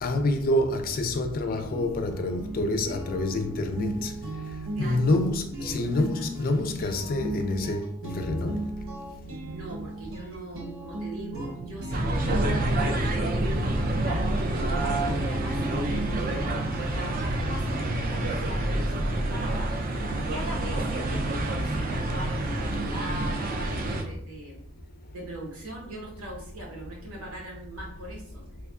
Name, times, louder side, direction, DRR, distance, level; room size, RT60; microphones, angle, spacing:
voice 1, 0.0-4.1 4.8-8.6, left 2 dB, 40° left, 0.4 m, -27 dB
sound 1, 1.7-17.2, right 1 dB, 65° right, 0.9 m, -37 dB
voice 2, 5.6-6.2 9.5-16.4 16.9-19.7 20.2-24.6 25.1-28.4, right 1 dB, 85° right, 1.2 m, -41 dB
sound 2, 11.9-24.0, right 1 dB, 40° right, 0.4 m, -28 dB
3.4 x 2.2 x 3.5 m
head